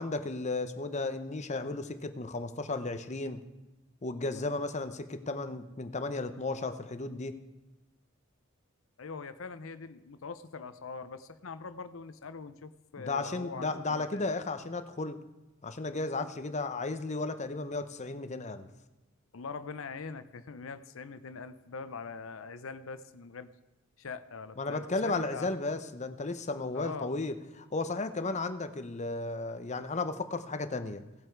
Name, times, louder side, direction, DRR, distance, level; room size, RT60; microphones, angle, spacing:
voice 1, 0.0-3.4 4.0-7.4 13.0-15.2 15.6-18.7 24.6-31.0, left 3 dB, 35° left, 10 dB, 0.8 m, -34 dB
voice 2, 9.0-14.3 19.3-23.5 24.0-25.5 26.7-27.1, left 4 dB, 85° left, 12 dB, 0.7 m, -43 dB
17.5 x 7.9 x 4.6 m, 1.1 s
head